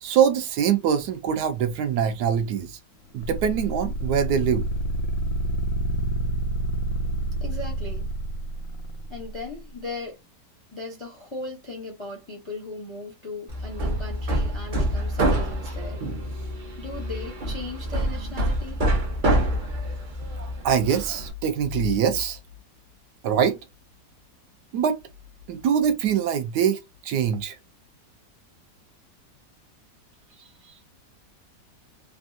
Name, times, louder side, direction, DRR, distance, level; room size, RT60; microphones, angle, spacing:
voice 1, 0.0-2.8 3.1-4.6 20.6-22.4 23.2-23.6 24.7-25.0 25.5-27.6, right 8 dB, 75° right, 1.1 m, -23 dB
sound 1, 3.2-9.4, right 1 dB, 85° left, 1.3 m, -28 dB
voice 2, 7.4-8.1 9.1-10.2 10.7-16.1 16.8-18.8 30.3-30.8, left 2 dB, 35° left, 0.4 m, -38 dB
Hammer, 13.5-21.3, right 1 dB, 50° right, 0.6 m, -26 dB
3.4 x 2.3 x 2.5 m
omnidirectional pair, 1.9 m